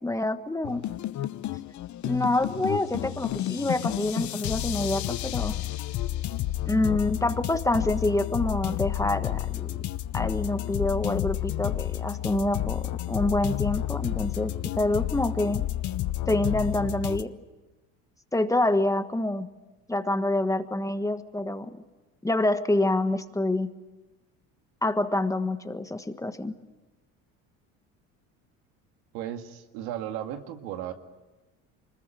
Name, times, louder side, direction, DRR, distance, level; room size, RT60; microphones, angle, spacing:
voice 1, 0.0-0.8 2.0-5.5 6.7-9.8 10.1-15.6 16.3-17.3 18.3-19.5 19.9-21.7 22.2-23.7 24.8-26.5, left 2 dB, 10° left, 8 dB, 1.4 m, -27 dB
sound 1, 0.6-17.2, left 14 dB, 55° left, 1.0 m, -31 dB
voice 2, 29.1-30.9, right 11 dB, 90° right, 6 dB, 2.1 m, -35 dB
25.0 x 20.5 x 9.2 m, 1.1 s
cardioid pair, 115°, 35 cm